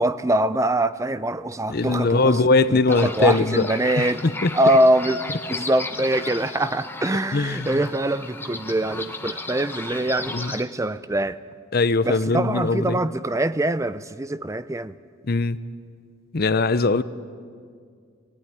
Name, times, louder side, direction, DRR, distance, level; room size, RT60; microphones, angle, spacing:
voice 1, 0.0-2.4 2.7-4.2 4.5-5.2 5.5-11.4 12.0-14.9, right 1 dB, 15° right, 0.5 m, -23 dB
voice 2, 1.7-3.7 4.0-4.5 7.3-7.8 10.3-10.5 11.7-13.0 15.3-15.6 16.3-17.0, left 3 dB, 45° left, 0.6 m, -21 dB
sound 1, 2.9-10.6, left 3 dB, 10° left, 0.9 m, -35 dB
19.0 x 17.0 x 9.9 m
head